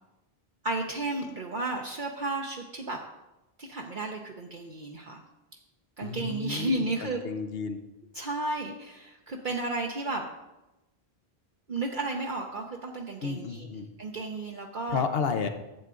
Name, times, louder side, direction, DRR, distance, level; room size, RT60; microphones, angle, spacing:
voice 1, 0.6-3.0 3.6-5.2 6.0-7.2 8.1-10.2 11.7-15.0, right 2 dB, 55° right, 0 dB, 0.9 m, -33 dB
voice 2, 6.0-7.8 13.2-13.9 14.9-15.5, left 6 dB, 70° left, 8 dB, 1.0 m, -32 dB
11.5 x 7.9 x 3.8 m, 0.99 s
omnidirectional pair, 1.0 m